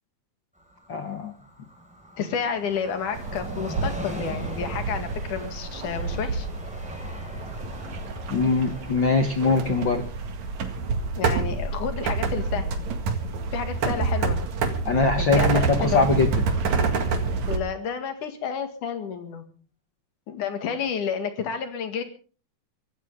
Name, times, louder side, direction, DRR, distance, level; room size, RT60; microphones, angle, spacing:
Train, 0.6-13.9 14.2-14.3, equal, ahead, 5.2 m, -41 dB
voice 1, 0.9-1.3 8.3-10.1 14.8-16.4, left 3 dB, 55° left, 6 dB, 1.4 m, -22 dB
voice 2, 2.2-6.5 11.1-12.9 13.5-14.4 15.2-16.0 17.5-19.4 20.3-22.0, left 7 dB, 85° left, 7 dB, 3.5 m, -30 dB
sound 1, 3.1-17.6, right 4 dB, 65° right, 3.2 m, -28 dB
24.0 x 15.5 x 3.7 m, 0.39 s
omnidirectional pair, 3.5 m